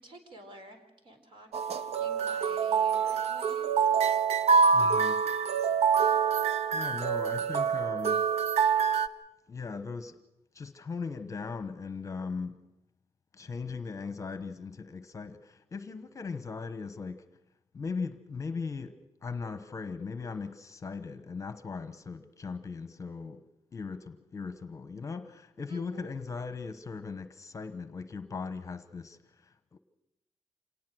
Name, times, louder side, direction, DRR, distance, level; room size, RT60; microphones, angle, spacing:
voice 1, 0.0-4.0 25.7-26.1, right 2 dB, 50° right, 4.0 m, -51 dB
sound 1, 1.5-9.1, right 6 dB, 75° right, 0.8 m, -26 dB
voice 2, 4.7-5.2 6.7-8.2 9.5-10.2 10.5-12.7 13.3-17.3 17.7-23.4 23.7-29.8, left 4 dB, 30° left, 1.0 m, -38 dB
26.5 x 19.0 x 6.3 m
wide cardioid pair, 150°, 11 cm